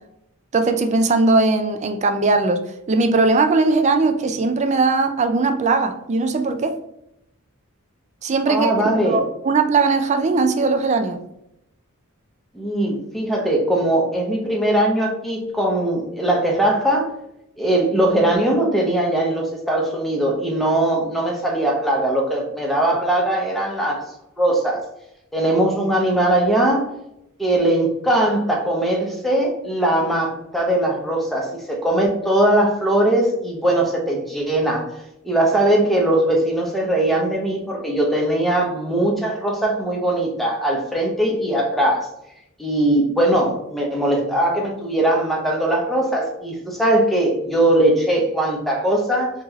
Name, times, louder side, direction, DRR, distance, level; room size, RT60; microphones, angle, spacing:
voice 1, 0.5-2.6 2.9-6.8 8.2-8.7 9.0-11.2, right 3 dB, 30° right, 7 dB, 0.4 m, -19 dB
voice 2, 8.5-9.2 12.5-17.1 17.6-24.0 24.4-24.8 25.3-26.8 27.4-34.9 35.2-42.1 42.6-49.3, right 1 dB, ahead, -1 dB, 0.7 m, -20 dB
3.0 x 3.0 x 3.5 m, 0.81 s
head